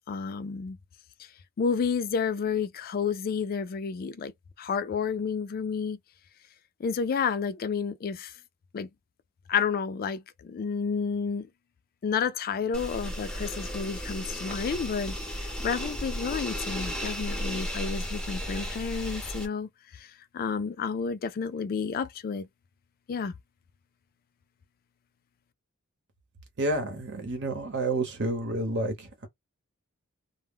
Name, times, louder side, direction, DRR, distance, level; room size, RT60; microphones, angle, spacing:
voice 1, 0.1-0.8 1.6-4.3 4.6-6.0 6.8-8.3 8.7-8.9 9.5-11.5 12.0-19.7 20.0-20.1 20.3-22.5 23.1-23.3, left 6 dB, 45° left, 0.3 m, -30 dB
sound 1, 12.7-19.5, equal, 5° left, 0.6 m, -34 dB
voice 2, 26.6-29.3, right 2 dB, 55° right, 0.9 m, -30 dB
2.1 x 2.0 x 3.5 m
head